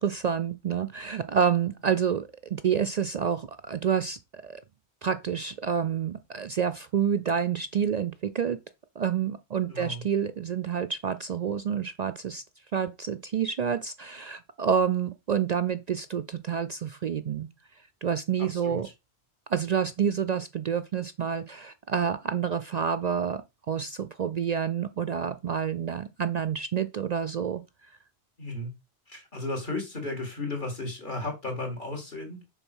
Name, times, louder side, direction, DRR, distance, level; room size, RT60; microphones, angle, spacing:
voice 1, 0.0-4.6 5.0-8.6 9.0-12.4 12.7-17.5 18.0-18.9 19.5-23.4 23.7-27.6, right 7 dB, 55° right, 0.4 m, -28 dB
voice 2, 9.7-10.0 18.4-18.9 28.4-28.7 29.1-32.4, left 2 dB, 50° left, 2.7 m, -34 dB
6.7 x 4.0 x 6.2 m
omnidirectional pair, 1.1 m